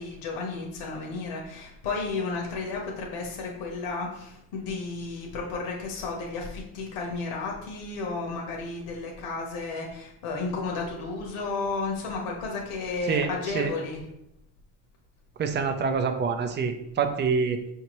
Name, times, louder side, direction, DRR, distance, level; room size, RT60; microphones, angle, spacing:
voice 1, 0.0-14.1, left 3 dB, 85° left, -1 dB, 1.0 m, -33 dB
voice 2, 15.4-17.6, right 5 dB, 25° right, 7 dB, 0.4 m, -26 dB
5.4 x 2.8 x 3.0 m, 0.81 s
cardioid pair, 110°, 49 cm